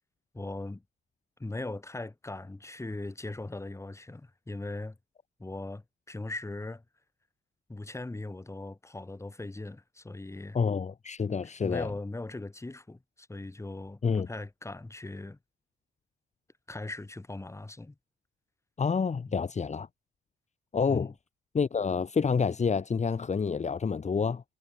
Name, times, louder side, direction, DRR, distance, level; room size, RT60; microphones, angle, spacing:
voice 1, 0.3-0.8 1.4-5.0 5.4-6.8 7.7-10.6 11.6-15.4 16.7-18.0 19.3-19.5 20.9-21.1, left 2 dB, 15° left, 3.6 m, -39 dB
voice 2, 10.5-11.9 14.0-14.3 18.8-19.9 20.7-21.1 21.5-24.4, left 5 dB, 35° left, 2.3 m, -28 dB
cardioid pair, 90°, 20 cm